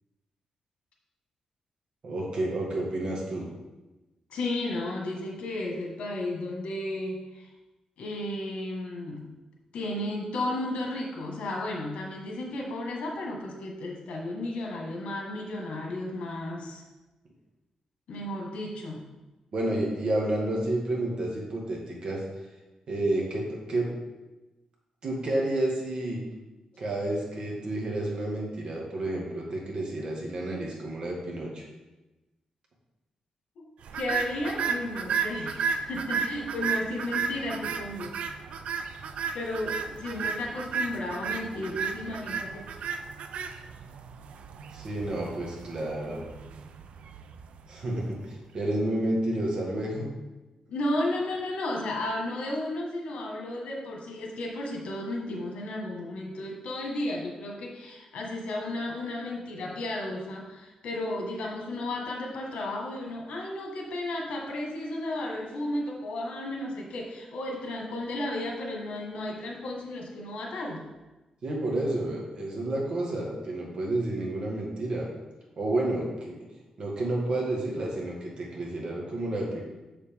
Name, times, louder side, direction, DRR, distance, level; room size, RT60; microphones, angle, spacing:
voice 1, 2.0-3.5 19.5-22.2 22.9-23.9 25.0-26.2 26.8-31.6 44.7-46.2 47.7-50.1 71.4-75.1 75.6-76.4 76.8-79.6, right 1 dB, 45° right, -2 dB, 1.8 m, -30 dB
voice 2, 4.3-7.5 8.0-9.3 9.7-16.8 18.1-19.0 33.6-38.1 39.3-42.7 50.7-70.9, left 1 dB, 85° left, -1 dB, 1.7 m, -33 dB
sound 1, 33.9-48.2, right 6 dB, 75° right, 0.5 m, -34 dB
6.9 x 6.9 x 3.6 m, 1.1 s
wide cardioid pair, 160°, 2 cm